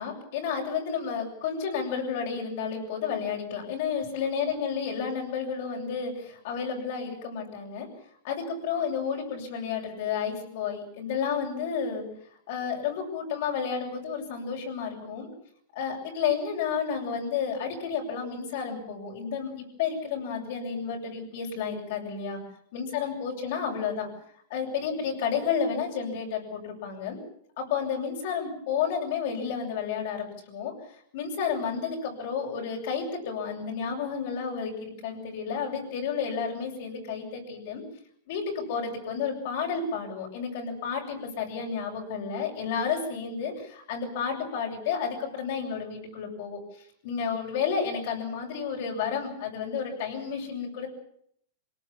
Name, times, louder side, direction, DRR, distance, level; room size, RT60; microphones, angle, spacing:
voice 1, 0.0-7.9 8.2-12.0 12.5-15.3 15.7-22.4 22.7-24.1 24.5-27.2 27.6-30.7 31.1-37.8 38.3-46.6 47.0-50.9, left 6 dB, 55° left, -1 dB, 7.6 m, -31 dB
26.0 x 19.0 x 7.4 m, 0.67 s
supercardioid pair, 170°, 0 cm